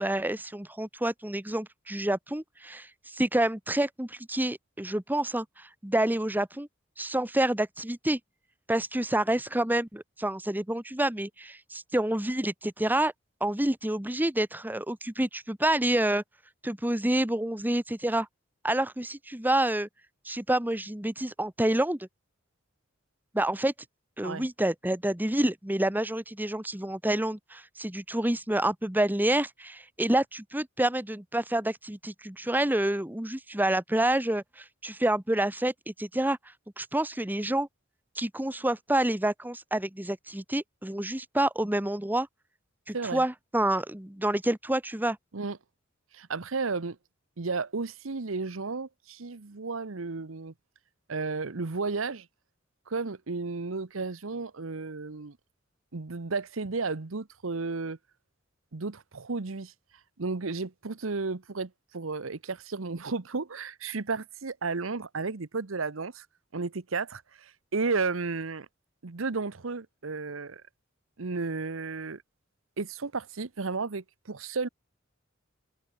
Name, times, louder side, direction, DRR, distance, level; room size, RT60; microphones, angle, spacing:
voice 1, 0.0-6.7 7.0-8.2 8.7-13.1 13.4-16.2 16.6-18.3 18.6-19.9 20.2-22.1 23.3-23.7 24.2-36.4 36.8-37.7 38.2-42.3 42.9-45.2, right 1 dB, 10° right, 1.2 m, -28 dB
voice 2, 42.9-43.2 45.3-45.6 46.1-47.0 47.4-50.5 51.1-52.3 52.9-55.4 55.9-58.0 58.7-59.7 60.2-66.3 66.5-68.7 69.0-70.6 71.2-72.2 72.8-74.7, right 4 dB, 85° right, 1.0 m, -33 dB
head